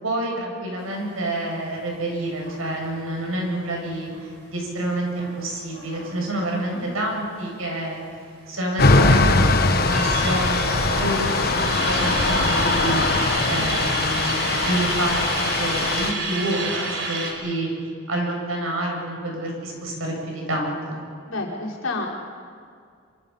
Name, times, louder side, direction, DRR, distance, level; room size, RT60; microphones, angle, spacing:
voice 1, 0.0-4.1 4.5-8.0 8.5-17.7 18.1-21.0, right 1 dB, 80° right, 0 dB, 7.7 m, -28 dB
sound 1, 2.4-7.5 7.8-7.9 8.1-9.1 9.5-17.3, right 3 dB, 60° right, 4.9 m, -30 dB
sound 2, 8.8-16.1, left 3 dB, 45° left, 1.3 m, -21 dB
voice 2, 21.3-22.1, left 3 dB, 75° left, -3 dB, 5.4 m, -29 dB
26.5 x 26.0 x 5.8 m, 2.2 s
head